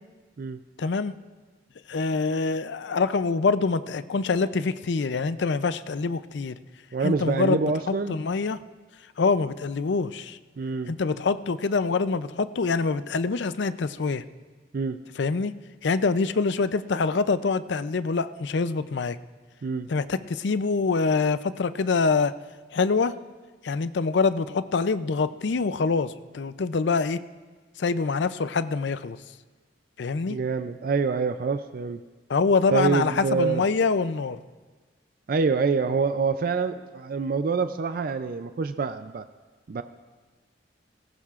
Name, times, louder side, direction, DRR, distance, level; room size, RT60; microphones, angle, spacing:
voice 1, 0.8-1.1 1.9-6.6 7.0-7.6 7.9-8.6 9.2-10.4 10.9-14.2 15.2-15.5 15.8-19.2 19.9-22.3 22.7-23.1 23.6-27.2 27.8-29.2 30.0-30.4 32.3-34.4, left 4 dB, 65° left, 13 dB, 0.5 m, -25 dB
voice 2, 6.9-8.2 10.6-10.9 14.7-15.0 19.6-19.9 30.3-32.0 32.7-33.6 35.3-39.2 39.7-39.8, right 4 dB, 50° right, 10 dB, 0.4 m, -26 dB
19.0 x 17.5 x 2.5 m, 1.3 s
head